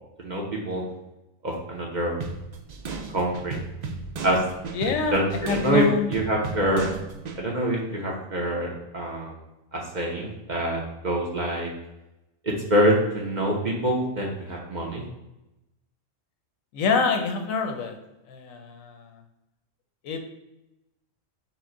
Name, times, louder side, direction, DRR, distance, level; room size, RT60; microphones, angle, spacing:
voice 1, 0.2-0.8 1.4-2.2 3.1-3.6 4.2-4.4 5.1-5.8 6.1-6.9 7.4-9.4 9.7-11.7 12.4-15.0, right 1 dB, 45° right, -1 dB, 0.7 m, -25 dB
sound 1, 2.2-7.4, right 4 dB, 75° right, 0.4 m, -35 dB
voice 2, 4.7-6.1 16.7-18.0 18.3-19.2 20.0-20.2, left 5 dB, 85° left, 5 dB, 1.1 m, -26 dB
5.7 x 2.1 x 3.7 m, 0.94 s
omnidirectional pair, 1.4 m